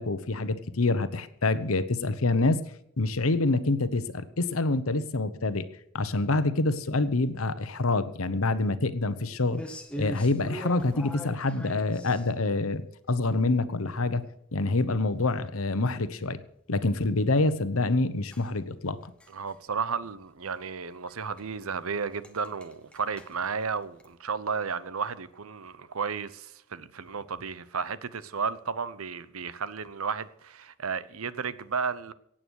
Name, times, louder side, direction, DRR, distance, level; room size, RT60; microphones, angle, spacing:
voice 1, 0.0-2.6 3.0-5.7 5.9-9.7 10.0-14.3 14.5-16.4 16.7-19.1, left 2 dB, 85° left, 1.0 m, -26 dB
sound 1, 9.5-12.5 18.3-19.6 19.9-20.1 20.4-20.6 21.1-21.2 21.4-21.5 21.8-21.9 22.1-24.1, equal, 5° left, 1.1 m, -42 dB
voice 2, 19.3-32.1, right 5 dB, 85° right, 0.8 m, -33 dB
16.5 x 8.8 x 6.5 m
head